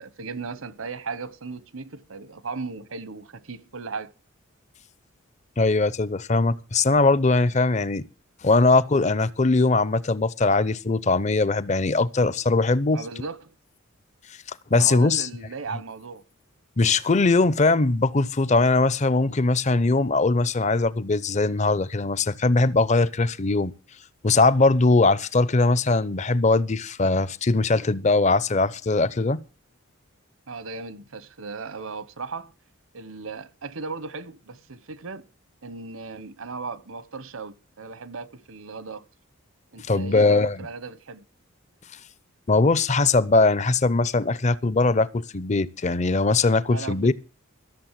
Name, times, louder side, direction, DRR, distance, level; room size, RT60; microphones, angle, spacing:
voice 1, 0.0-4.1 12.9-13.5 14.7-16.2 30.5-32.5 32.9-35.3 35.6-39.0 39.7-41.2 46.7-47.1, right 4 dB, 75° right, 1.0 m, -36 dB
voice 2, 5.6-8.1 8.4-13.0 14.7-15.3 16.8-23.7 24.2-29.4 39.9-40.7 42.5-47.1, left 3 dB, 35° left, 0.6 m, -21 dB
14.0 x 7.0 x 7.4 m
head